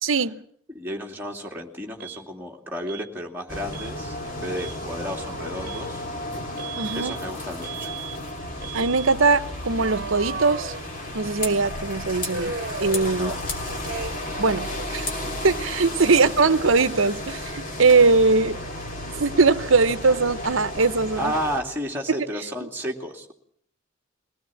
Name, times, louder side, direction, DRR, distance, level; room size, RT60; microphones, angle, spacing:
voice 1, 0.0-0.4 6.8-7.1 8.7-10.7 11.1-12.5 12.8-13.3 14.4-15.1 15.4-18.6 19.2-21.3 22.1-22.2 22.6-22.7, right 4 dB, 75° right, 15 dB, 0.8 m, -21 dB
voice 2, 0.7-6.1 6.9-7.9 13.1-13.4 21.2-23.3, equal, 10° right, 0 dB, 2.6 m, -32 dB
Alarm, 2.0-2.2 2.9-3.1 3.7-3.9 4.4-4.8 5.6-5.9 6.6-7.2 7.6-8.2 8.6-9.1 9.7-11.3 12.3-13.5 13.8-14.4 14.6-16.3, right 4 dB, 50° right, 1.3 m, -36 dB
sound 1, 3.5-21.6, left 1 dB, 40° left, 3.3 m, -33 dB
22.5 x 17.5 x 8.7 m, 0.63 s
head